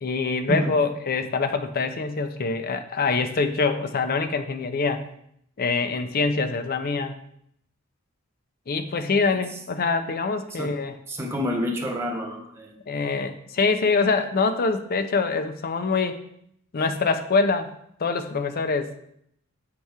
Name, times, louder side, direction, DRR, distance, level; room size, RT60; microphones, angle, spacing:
voice 1, 0.0-5.0 5.6-7.2 8.7-10.9 12.9-16.2 16.7-17.7 18.0-18.9, left 4 dB, 45° left, 9 dB, 0.5 m, -24 dB
voice 2, 11.1-12.7, equal, 10° right, -1 dB, 0.9 m, -28 dB
7.8 x 2.9 x 4.7 m, 0.73 s
head